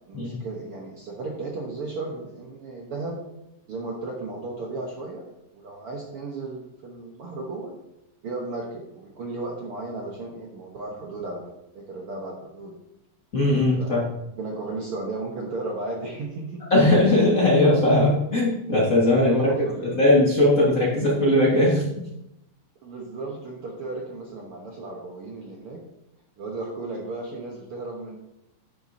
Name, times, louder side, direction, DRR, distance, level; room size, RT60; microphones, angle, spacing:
voice 1, 0.1-3.2 3.7-5.2 5.5-7.8 8.2-12.8 13.8-14.0 14.3-16.6 19.3-20.2 22.8-25.8 26.4-28.2, right 2 dB, 60° right, -1 dB, 1.6 m, -35 dB
voice 2, 13.3-14.0 16.7-21.9, left 1 dB, 35° left, -5 dB, 1.7 m, -19 dB
10.5 x 8.9 x 2.7 m, 0.85 s
omnidirectional pair, 3.6 m